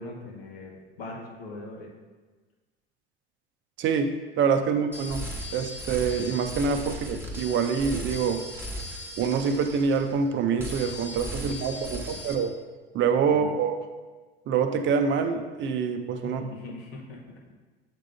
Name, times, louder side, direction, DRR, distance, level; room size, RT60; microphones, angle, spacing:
voice 1, 0.0-1.9 4.7-4.8 11.4-12.0 13.3-13.6 16.2-17.5, left 2 dB, 75° left, -1 dB, 1.3 m, -41 dB
voice 2, 3.8-5.2 5.5-8.4 9.2-12.5 12.9-13.8 14.5-16.4, right 6 dB, 40° right, 7 dB, 0.5 m, -26 dB
sound 1, 4.9-10.3 10.6-12.3, equal, 5° right, 1.1 m, -37 dB
7.3 x 3.6 x 3.6 m, 1.3 s
hypercardioid pair, 70°, 31 cm